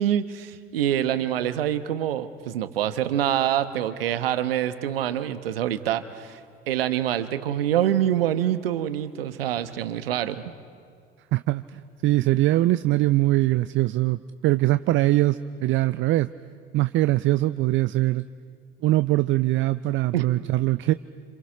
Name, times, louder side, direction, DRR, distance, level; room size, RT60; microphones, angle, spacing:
voice 1, 0.0-6.4 6.7-10.5 20.1-20.3, right 11 dB, 75° right, 12 dB, 1.0 m, -25 dB
voice 2, 11.3-16.3 16.7-18.2 18.8-20.9, right 16 dB, 45° right, 14 dB, 0.5 m, -22 dB
28.0 x 27.0 x 6.0 m, 2.2 s
figure-of-eight pair, 60°, 29 cm